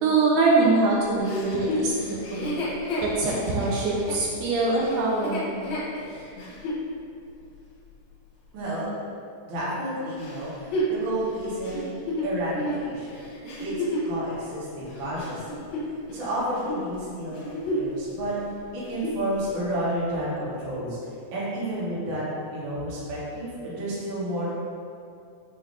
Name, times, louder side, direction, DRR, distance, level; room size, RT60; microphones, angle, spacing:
voice 1, 0.0-2.6 3.0-5.6, right 3 dB, 80° right, -4 dB, 2.0 m, -23 dB
Chuckle chortle, 1.2-6.8 7.4-7.5 10.2-14.2 14.8-16.3 16.5-16.8 17.3-18.0 18.3-18.4 18.8-19.3 19.9-20.0, equal, 75° left, 2.0 m, -31 dB
voice 2, 8.5-8.9 9.5-11.8 12.2-13.2 13.6-15.7 16.1-18.3 18.7-21.0 21.3-22.2 22.5-24.5, right 1 dB, 60° right, -9 dB, 1.3 m, -31 dB
5.4 x 3.3 x 2.4 m, 2.5 s
omnidirectional pair, 3.7 m